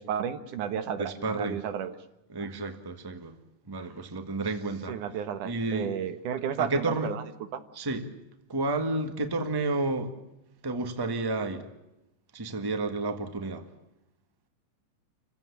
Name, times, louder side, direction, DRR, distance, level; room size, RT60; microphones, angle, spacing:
voice 1, 0.0-1.9 2.4-2.6 3.8-3.9 4.9-7.2 7.5-7.6, right 8 dB, 85° right, 3.0 m, -33 dB
voice 2, 1.0-1.6 2.3-3.4 3.7-5.0 5.4-5.9 6.6-7.1 7.7-8.2 8.5-10.1 10.6-11.7 12.3-13.7, right 2 dB, 10° right, 1.2 m, -31 dB
29.0 x 16.0 x 8.5 m
omnidirectional pair, 3.5 m